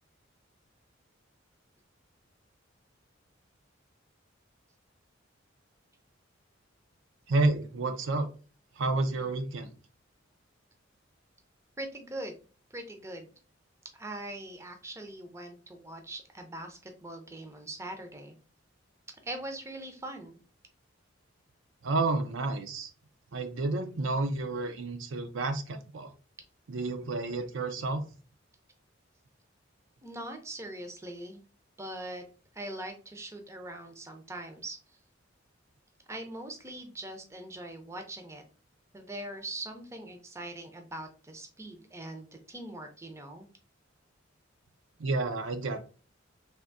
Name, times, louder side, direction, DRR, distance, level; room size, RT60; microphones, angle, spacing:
voice 1, 7.3-8.3 8.8-9.7 21.8-22.9 23.3-26.1 26.7-28.0 45.0-45.8, right 2 dB, 70° right, 7 dB, 0.5 m, -30 dB
voice 2, 11.8-12.3 12.7-13.3 13.9-18.3 19.2-20.4 30.0-31.4 31.8-32.2 32.5-34.8 36.1-38.4 38.9-43.5, right 1 dB, 15° right, 5 dB, 0.5 m, -41 dB
3.5 x 2.6 x 2.5 m, 0.36 s
head